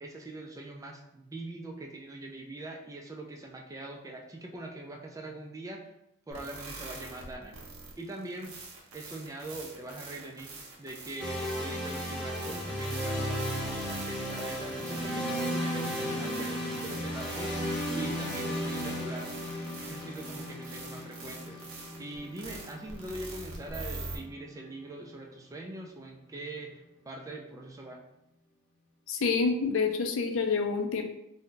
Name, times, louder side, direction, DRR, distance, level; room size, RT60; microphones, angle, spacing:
voice 1, 0.0-5.9 6.3-7.6 8.0-8.6 8.9-19.4 19.8-21.6 22.0-28.0, right 2 dB, 15° right, 1 dB, 0.3 m, -42 dB
sound 1, 6.3-24.2, right 3 dB, 85° right, 0.7 m, -45 dB
sound 2, 11.2-25.1, equal, 5° left, 0.9 m, -35 dB
voice 2, 29.1-31.0, left 4 dB, 65° left, 4 dB, 0.4 m, -27 dB
2.6 x 2.2 x 3.6 m, 0.82 s
head